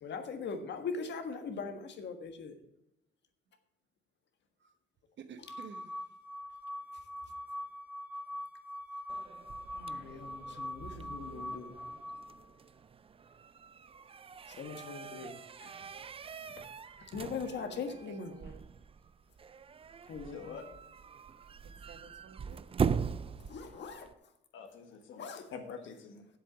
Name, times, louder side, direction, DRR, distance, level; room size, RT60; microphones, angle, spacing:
voice 1, 0.0-2.5 5.4-5.5 9.7-11.8 14.5-15.7 16.6-16.7 17.0-18.5 20.1-20.6 23.5-24.1 25.2-25.5, left 5 dB, 60° left, 6 dB, 1.6 m, -41 dB
voice 2, 5.3-5.9 17.5-18.6 21.9-22.7, right 6 dB, 65° right, 9 dB, 1.2 m, -52 dB
sound 1, 5.5-12.5, left 1 dB, 10° right, 0.9 m, -43 dB
sound 2, 9.1-24.1, right 6 dB, 30° right, 0.4 m, -41 dB
voice 3, 20.2-20.6 24.5-26.3, left 6 dB, 80° left, 5 dB, 1.7 m, -46 dB
7.7 x 7.7 x 7.3 m, 0.83 s
cardioid pair, 90°, 20 cm